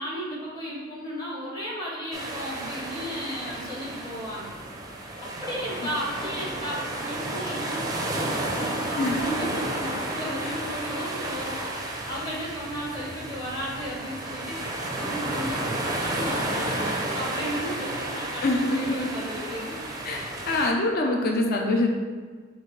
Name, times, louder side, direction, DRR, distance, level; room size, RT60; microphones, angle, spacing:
voice 1, 0.0-4.6 5.2-11.7 12.1-19.7, equal, 20° left, -6 dB, 0.9 m, -35 dB
sound 1, 2.1-20.7, right 1 dB, 15° right, 0.5 m, -32 dB
voice 2, 9.0-9.6 10.4-10.5 18.4-19.1 20.0-21.9, left 2 dB, 45° left, 1 dB, 0.5 m, -25 dB
6.6 x 2.5 x 3.1 m, 1.5 s
head